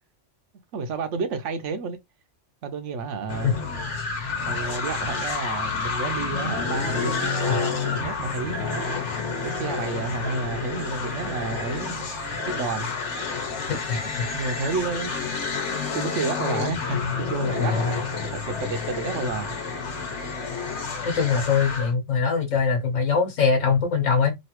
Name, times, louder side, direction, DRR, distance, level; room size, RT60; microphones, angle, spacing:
voice 1, 0.7-2.0 2.6-3.5 4.3-8.9 9.4-12.0 12.4-12.9 13.7-14.1 14.3-15.4 15.7-18.0 18.3-19.6, right 4 dB, 75° right, 1.0 m, -31 dB
sound 1, 3.3-21.9, left 5 dB, 70° left, 1.2 m, -29 dB
voice 2, 13.7-14.3 17.6-18.0 21.0-24.4, left 5 dB, 90° left, 1.3 m, -23 dB
3.0 x 2.6 x 2.9 m
omnidirectional pair, 1.3 m